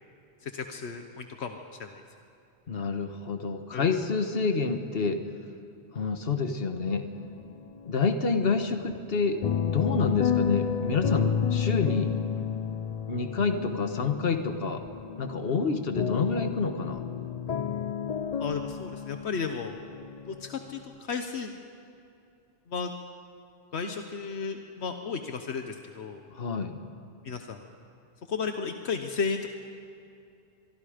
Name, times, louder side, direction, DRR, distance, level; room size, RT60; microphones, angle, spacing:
voice 1, 0.4-2.0 3.7-4.0 18.4-19.8 20.3-21.5 22.7-22.9 23.7-26.2 27.2-27.6 28.3-29.5, left 5 dB, 80° left, 6 dB, 1.3 m, -34 dB
voice 2, 2.7-5.2 5.9-7.1 7.8-12.1 13.1-14.8 15.2-17.0 26.3-26.8, left 4 dB, 60° left, 7 dB, 1.5 m, -28 dB
sound 1, 7.1-7.9 8.2-20.9, left 8 dB, 45° left, 0.6 m, -31 dB
24.0 x 23.5 x 5.1 m, 2.6 s
omnidirectional pair, 1.1 m